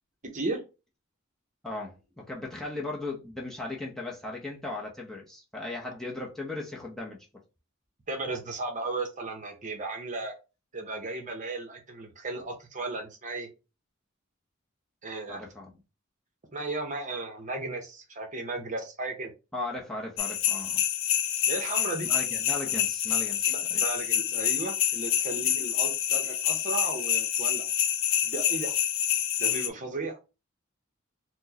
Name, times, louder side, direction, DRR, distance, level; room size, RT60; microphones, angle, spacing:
voice 1, 1.6-7.3 12.3-12.4 15.3-15.7 19.5-20.8 22.0-23.9, left 2 dB, ahead, 0.7 m, -37 dB
voice 2, 8.1-10.3 10.7-13.5 15.0-15.4 16.5-19.3 21.5-22.1 23.5-27.7 28.2-28.7 29.4-30.2, right 2 dB, 40° right, 0.8 m, -35 dB
sound 1, 20.2-29.7, left 10 dB, 70° left, 0.4 m, -27 dB
4.3 x 2.1 x 2.8 m
head